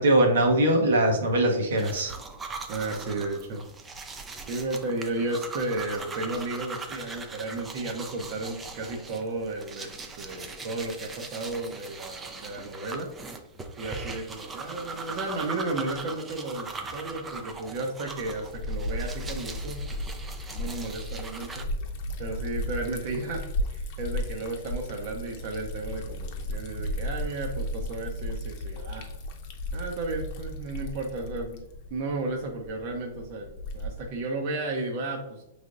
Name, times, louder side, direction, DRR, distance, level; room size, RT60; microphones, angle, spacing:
voice 1, 0.0-2.1, right 1 dB, 80° right, 2 dB, 0.9 m, -21 dB
sound 1, 1.8-21.6, right 4 dB, 15° right, 0.5 m, -40 dB
voice 2, 2.7-3.6 4.5-13.1 13.8-20.0 20.5-21.7 22.2-23.4 23.7-29.1 29.7-31.6 31.9-35.4, right 2 dB, 50° right, 1 dB, 0.7 m, -33 dB
Liquid, 18.2-34.2, left 1 dB, 50° left, 0.7 m, -35 dB
5.0 x 3.2 x 2.5 m, 0.84 s
hypercardioid pair, 125°, 0 cm